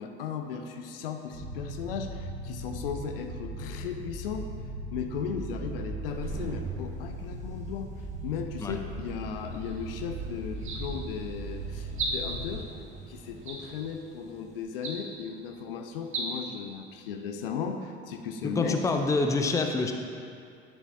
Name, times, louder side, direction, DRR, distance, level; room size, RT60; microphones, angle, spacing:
voice 1, 0.0-4.5 4.9-12.7 13.1-18.9, left 6 dB, 65° left, 5 dB, 0.6 m, -36 dB
sound 1, 1.3-12.6, right 1 dB, 80° right, 1.7 m, -39 dB
sound 2, 5.9-16.4, right 3 dB, 25° right, 0.9 m, -46 dB
sound 3, 9.6-9.9 10.6-11.2 11.9-12.5 13.4-14.0 14.7-15.3 16.0-16.3, right 3 dB, 45° right, 1.2 m, -36 dB
voice 2, 18.6-19.9, left 3 dB, 10° left, 4 dB, 0.5 m, -26 dB
10.5 x 6.3 x 2.7 m, 2.3 s
figure-of-eight pair, 55°, 30 cm